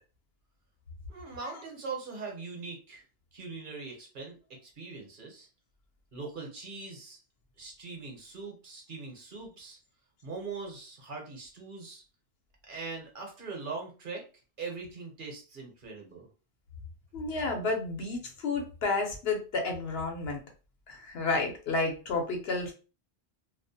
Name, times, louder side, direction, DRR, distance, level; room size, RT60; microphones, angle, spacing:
voice 1, 1.1-3.0 3.3-4.3 4.6-5.5 6.1-7.2 7.6-9.8 10.2-12.0 12.7-14.2 14.6-16.3, right 4 dB, 55° right, 1 dB, 0.9 m, -41 dB
voice 2, 17.1-20.4 20.9-22.7, left 3 dB, 75° left, 2 dB, 0.9 m, -31 dB
2.4 x 2.1 x 2.6 m, 0.33 s
omnidirectional pair, 1.0 m